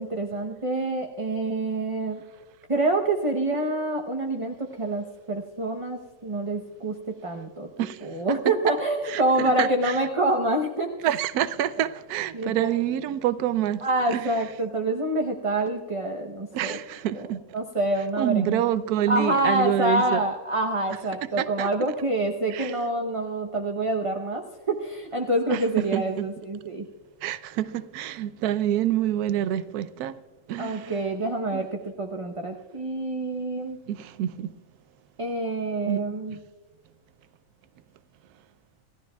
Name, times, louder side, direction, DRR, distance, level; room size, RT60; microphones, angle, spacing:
voice 1, 0.0-2.2 2.7-6.9 7.2-7.7 8.0-10.9 12.3-12.7 13.8-16.8 17.1-17.3 17.5-18.6 19.1-26.9 30.6-31.7 32.0-33.8 35.2-36.4, right 2 dB, 30° right, 0.7 m, -26 dB
voice 2, 9.1-10.0 11.0-14.3 16.5-17.4 18.2-20.2 21.4-21.7 22.5-22.7 25.5-26.3 27.2-30.2 30.5-31.0 31.5-31.6 33.9-34.5 35.9-36.0 36.3-36.4, right 11 dB, 85° right, 1.1 m, -27 dB
27.5 x 15.0 x 2.3 m
omnidirectional pair, 1.6 m